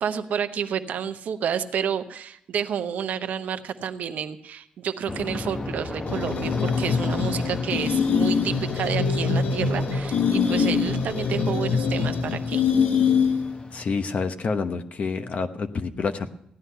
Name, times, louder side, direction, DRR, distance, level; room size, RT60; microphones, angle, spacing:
voice 1, 0.0-12.7, right 8 dB, 80° right, 9 dB, 0.8 m, -30 dB
Aircraft, 5.1-14.1, left 2 dB, 35° left, 0.9 m, -36 dB
sound 1, 6.1-13.6, left 6 dB, 90° left, 1.0 m, -24 dB
voice 2, 13.7-16.3, left 4 dB, 60° left, 9 dB, 0.9 m, -28 dB
15.0 x 9.9 x 5.6 m, 0.74 s
cardioid pair, 75°, 3 cm